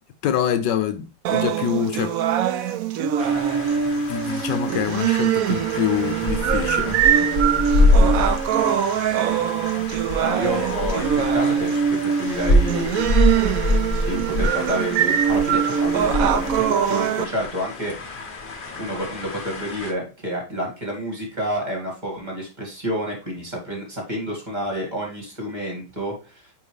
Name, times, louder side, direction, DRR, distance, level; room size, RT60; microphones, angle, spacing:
voice 1, 0.2-2.1 3.0-3.5 4.1-7.0, left 9 dB, 70° left, 1.2 m, -25 dB
sound 1, 1.2-17.2, right 8 dB, 75° right, 0.7 m, -22 dB
sound 2, 3.2-19.9, left 2 dB, 40° left, 0.7 m, -25 dB
voice 2, 10.2-13.1 13.9-18.3 18.8-26.5, equal, 25° right, 2.1 m, -29 dB
9.0 x 3.5 x 3.2 m
omnidirectional pair, 2.1 m